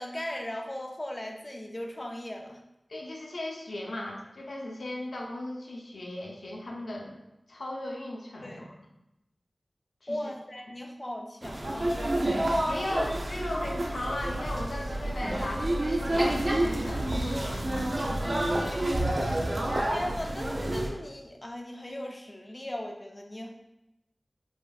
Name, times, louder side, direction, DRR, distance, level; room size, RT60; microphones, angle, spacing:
voice 1, 0.0-2.6 8.4-8.7 10.1-12.1 12.9-13.1 18.2-18.8 19.2-19.6 19.9-23.5, left 1 dB, 30° left, 2 dB, 0.4 m, -38 dB
voice 2, 2.9-7.2 7.5-8.7 10.0-10.3 12.7-18.7, left 1 dB, 85° left, -1 dB, 0.6 m, -37 dB
sound 1, 11.4-20.9, right 1 dB, 55° right, 0.6 m, -29 dB
4.9 x 2.5 x 2.3 m, 0.90 s
wide cardioid pair, 45°, 0 cm